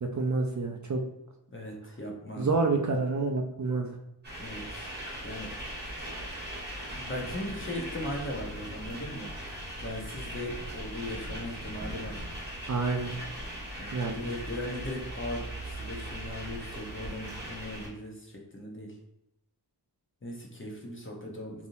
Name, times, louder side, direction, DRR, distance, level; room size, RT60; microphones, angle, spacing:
voice 1, 0.0-1.0 2.4-3.9 12.7-13.1 13.9-14.2, right 3 dB, 45° right, 1 dB, 0.4 m, -28 dB
voice 2, 1.5-2.5 4.4-4.9 5.2-5.5 7.0-9.3 9.8-12.2 13.8-18.9 20.2-21.7, left 1 dB, 30° left, -1 dB, 0.8 m, -38 dB
sound 1, 4.2-17.9, right 1 dB, 25° right, 1.2 m, -39 dB
3.4 x 2.7 x 2.6 m, 0.84 s
wide cardioid pair, 70°, 42 cm